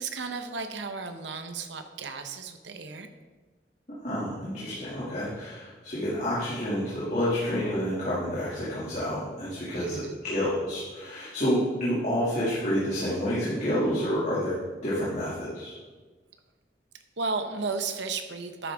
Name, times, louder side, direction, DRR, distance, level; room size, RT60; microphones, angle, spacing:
voice 1, 0.0-3.1 9.7-10.2 17.2-18.7, right 4 dB, 90° right, 7 dB, 0.9 m, -34 dB
voice 2, 3.9-15.8, equal, 45° left, -9 dB, 2.5 m, -29 dB
11.5 x 9.5 x 3.6 m, 1.3 s
head